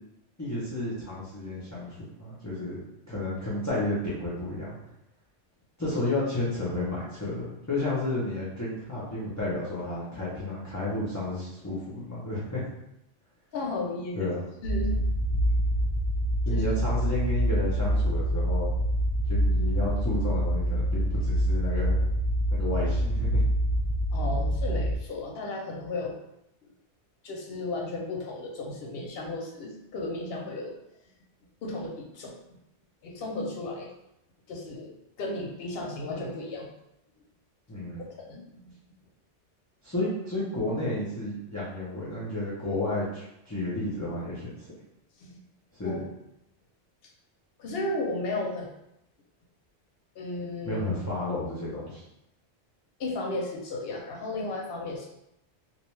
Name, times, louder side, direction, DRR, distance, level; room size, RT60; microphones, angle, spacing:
voice 1, 0.4-2.8 3.1-4.8 5.8-12.6 14.2-14.4 16.5-18.7 19.3-22.0 22.5-23.5 37.7-38.0 39.8-44.7 45.8-46.0 50.6-52.0, left 2 dB, 25° left, -9 dB, 0.4 m, -32 dB
voice 2, 13.5-14.3 14.6-15.6 16.5-16.7 24.1-26.1 27.2-30.7 31.6-32.3 33.0-33.9 34.5-34.9 35.2-36.7 38.3-38.7 45.2-45.3 45.8-46.0 47.6-48.7 50.2-50.8 53.0-55.1, left 2 dB, 65° left, -1 dB, 0.7 m, -34 dB
sound 1, 14.6-24.9, equal, 70° right, 0.8 m, -26 dB
2.5 x 2.1 x 3.1 m, 0.84 s
omnidirectional pair, 1.2 m